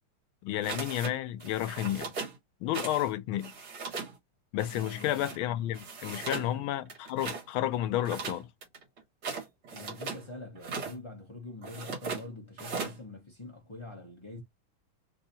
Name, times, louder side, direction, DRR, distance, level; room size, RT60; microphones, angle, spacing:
voice 1, 0.4-2.1 2.6-3.5 4.5-8.5, left 12 dB, 85° left, 1.4 m, -31 dB
sound 1, 0.6-1.1 1.4-2.4 2.7-3.1 3.3-4.1 4.6-5.4 5.7-6.5 6.9-7.4 8.0-10.2 10.6-11.0 11.6-12.2 12.6-13.0, right 4 dB, 60° right, 1.9 m, -38 dB
voice 2, 4.7-5.6 6.3-6.8 9.7-14.4, left 2 dB, 30° left, 0.5 m, -45 dB
3.8 x 2.7 x 2.6 m
omnidirectional pair, 2.3 m